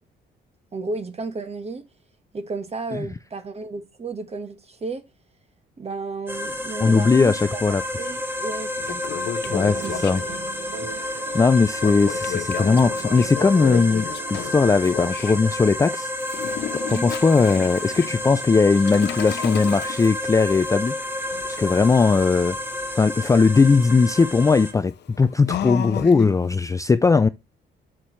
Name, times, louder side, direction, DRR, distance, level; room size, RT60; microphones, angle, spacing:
voice 1, 0.7-1.8 2.3-5.0 5.8-9.0 9.4-10.0 16.9-17.1, right 3 dB, 30° right, 1.3 m, -33 dB
sound 1, 6.3-24.7, left 1 dB, 10° right, 1.5 m, -30 dB
voice 2, 6.8-7.8 9.5-10.2 11.1-16.1 16.9-21.0 21.4-22.6 22.9-27.3, left 4 dB, 15° left, 0.3 m, -19 dB
Toilet flush, 8.1-8.2 8.6-10.5 11.8-15.4 16.2-26.5, left 10 dB, 60° left, 0.7 m, -34 dB
sound 2, 9.7-15.4, right 9 dB, 80° right, 0.8 m, -40 dB
7.4 x 6.6 x 3.1 m
cardioid pair, 90°, 20 cm